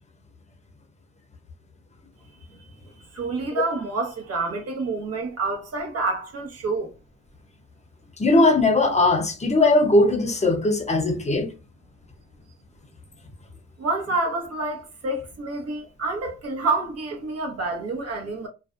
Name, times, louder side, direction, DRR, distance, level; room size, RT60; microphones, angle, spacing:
voice 1, 2.9-6.9 13.8-18.5, right 3 dB, 55° right, 1.0 m, -28 dB
voice 2, 8.2-11.5, left 2 dB, 25° left, 0.7 m, -19 dB
2.5 x 2.2 x 2.4 m
cardioid pair, 90°, 30 cm